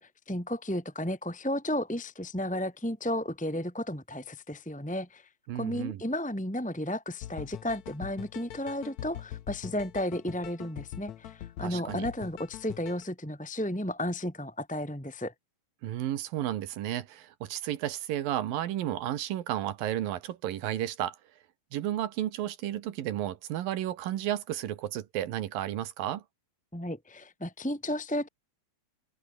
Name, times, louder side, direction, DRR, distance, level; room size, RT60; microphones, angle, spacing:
voice 1, 0.0-5.3 5.5-15.3 26.7-28.3, left 1 dB, ahead, 3.3 m, -33 dB
voice 2, 5.5-6.0 11.6-12.1 15.8-21.2 21.7-26.2, right 12 dB, 80° right, 3.1 m, -32 dB
sound 1, 7.2-13.0, left 12 dB, 65° left, 2.2 m, -43 dB
omnidirectional pair, 4.0 m